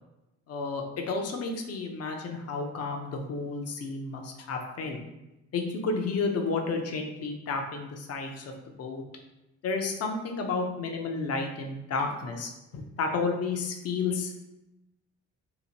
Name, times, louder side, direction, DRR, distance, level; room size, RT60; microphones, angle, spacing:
voice 1, 0.5-5.0 5.5-8.5 8.8-9.0 9.6-14.4, left 4 dB, 55° left, 3 dB, 0.6 m, -31 dB
2.8 x 2.1 x 2.8 m, 0.95 s
cardioid pair, 90°, 30 cm